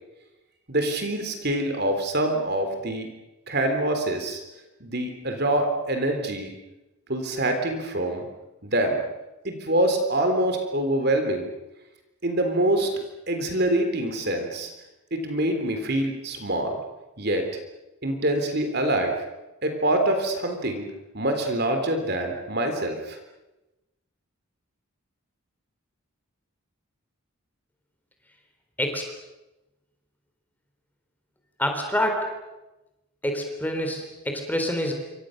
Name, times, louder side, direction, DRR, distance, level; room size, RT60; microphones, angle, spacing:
voice 1, 0.7-3.1 3.5-4.4 4.8-6.5 7.1-8.2 8.6-9.0 9.4-11.5 12.2-13.0 13.3-14.7 15.1-16.8 17.2-17.5 18.0-19.2 19.6-20.9 21.1-23.2, right 1 dB, 45° right, 5 dB, 3.5 m, -25 dB
voice 2, 31.6-32.3 33.2-34.9, left 1 dB, 10° left, 4 dB, 3.7 m, -26 dB
27.5 x 25.5 x 6.6 m, 1.0 s
head